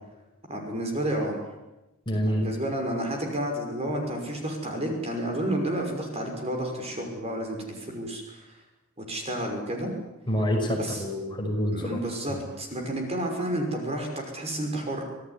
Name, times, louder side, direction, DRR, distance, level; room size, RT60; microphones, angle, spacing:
voice 1, 0.5-1.4 2.3-8.4 9.1-9.9 10.8-11.0 11.7-15.0, right 1 dB, 30° right, 3 dB, 5.9 m, -30 dB
voice 2, 2.1-2.5 10.3-11.9 12.3-12.4, equal, 25° left, 1 dB, 5.7 m, -27 dB
26.0 x 17.5 x 9.9 m, 0.99 s
head